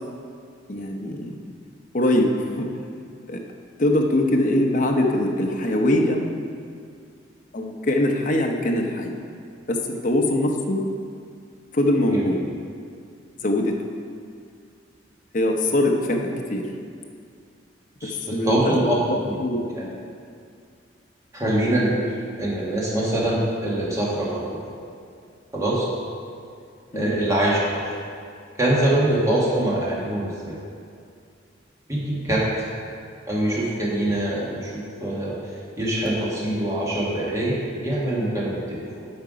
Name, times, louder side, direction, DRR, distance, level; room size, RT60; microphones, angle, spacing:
voice 1, 0.7-1.3 1.9-2.7 3.3-3.4 3.8-6.3 7.5-9.1 9.7-10.9 11.7-12.4 13.4-13.8 15.3-16.7 18.0-18.7 19.4-19.9 26.9-27.1, left 1 dB, 45° left, 2 dB, 0.7 m, -22 dB
voice 2, 18.0-19.0 19.3-19.4 19.7-19.9 21.3-24.7 25.5-25.9 26.9-27.9 28.6-30.6 31.9-32.4 33.3-35.4 35.8-39.1, right 1 dB, 15° right, -6 dB, 1.5 m, -24 dB
7.8 x 5.7 x 5.0 m, 2.3 s
head